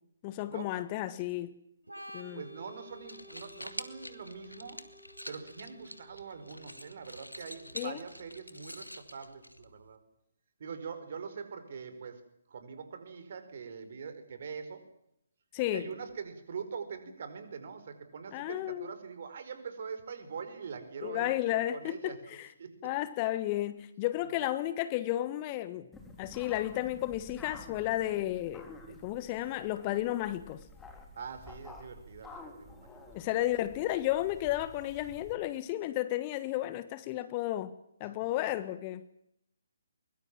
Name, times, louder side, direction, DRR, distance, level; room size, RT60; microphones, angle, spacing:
voice 1, 0.2-1.5 2.1-2.4 7.7-8.0 15.5-15.9 18.3-18.9 21.0-22.5 22.8-25.9 26.2-30.6 33.1-37.7 38.0-39.0, left 14 dB, 25° left, 1.3 m, -33 dB
Organ, 1.8-9.3, equal, 80° right, 7.9 m, -54 dB
voice 2, 2.3-4.8 5.3-10.0 10.6-14.9 15.7-21.3 21.7-22.7 31.1-32.9 38.0-38.1, right 6 dB, 45° right, 4.8 m, -43 dB
sound 1, 2.9-9.9, left 1 dB, 85° left, 2.2 m, -47 dB
sound 2, 25.9-35.3, left 2 dB, 10° left, 4.0 m, -51 dB
23.0 x 23.0 x 7.5 m
figure-of-eight pair, 135°, 0 cm